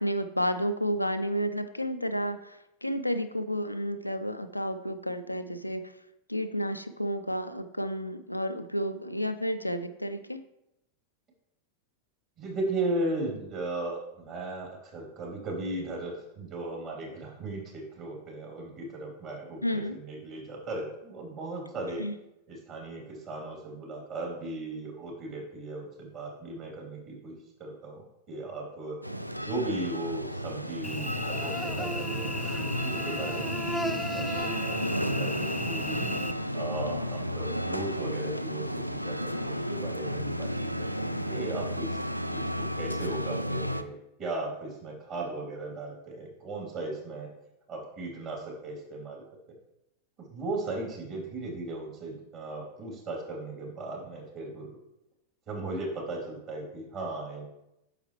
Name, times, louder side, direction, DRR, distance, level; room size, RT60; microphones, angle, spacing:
voice 1, 0.0-5.9 6.3-10.4 19.6-20.0 22.0-22.1, equal, 90° left, 9 dB, 0.4 m, -31 dB
voice 2, 12.4-22.0 22.5-29.0 29.3-34.8 35.1-36.0 36.5-40.5 41.0-42.0 42.3-47.3 47.7-49.2 50.3-54.8 55.5-57.5, right 2 dB, 35° right, -1 dB, 3.1 m, -37 dB
sound 1, 29.0-43.8, equal, 90° right, 0.3 m, -33 dB
Cricket / Buzz, 30.8-36.3, equal, ahead, 0.4 m, -35 dB
8.7 x 6.4 x 3.2 m, 0.87 s
figure-of-eight pair, 90°, 0 cm